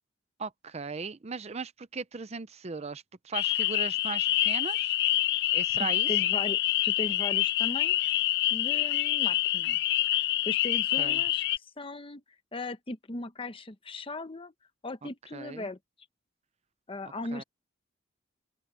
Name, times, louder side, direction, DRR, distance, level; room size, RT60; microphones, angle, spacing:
voice 1, 0.4-4.9 5.5-6.1 11.0-11.2 15.3-15.7 17.0-17.4, right 4 dB, 35° right, 0.6 m, -38 dB
sound 1, 3.3-11.6, left 15 dB, 60° left, 0.5 m, -26 dB
voice 2, 5.8-8.0 8.5-9.8 10.5-12.2 12.5-14.5 14.8-15.8 16.9-17.4, left 2 dB, 25° left, 0.9 m, -38 dB
open air
head